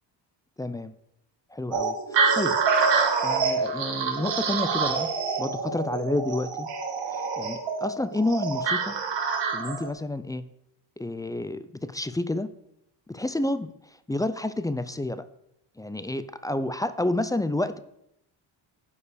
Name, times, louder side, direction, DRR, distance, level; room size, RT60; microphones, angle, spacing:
voice 1, 0.6-0.9 1.5-2.6 3.0-5.1 5.4-6.7 7.1-9.0 9.5-10.5 11.0-12.5 13.1-13.7 14.1-15.2 15.8-17.8, left 2 dB, 10° left, 12 dB, 0.3 m, -29 dB
sound 1, 1.7-9.9, right 5 dB, 60° right, 1.7 m, -26 dB
11.5 x 4.8 x 5.0 m, 0.79 s
cardioid pair, 90°, 48 cm